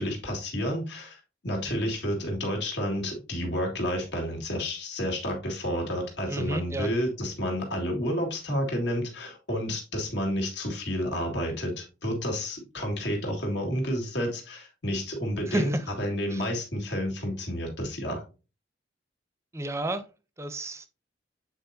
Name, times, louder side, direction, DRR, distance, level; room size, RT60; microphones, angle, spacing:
voice 1, 0.0-15.7 16.0-18.2, equal, 70° left, 2.1 m, -30 dB
voice 2, 6.3-6.9 15.5-15.9 16.3-16.4 19.5-20.0 20.4-20.9, right 1 dB, 15° right, 0.6 m, -31 dB
8.0 x 4.6 x 2.7 m
head